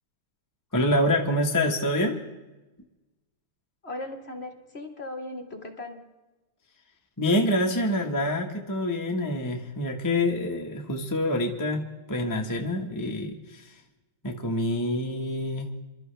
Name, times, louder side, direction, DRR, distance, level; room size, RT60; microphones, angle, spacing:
voice 1, 0.7-2.2 7.2-13.7 14.2-15.7, left 1 dB, 10° left, 1 dB, 1.0 m, -26 dB
voice 2, 3.8-6.0, left 2 dB, 30° left, 3 dB, 1.6 m, -37 dB
26.5 x 12.5 x 3.4 m, 1.1 s
omnidirectional pair, 2.4 m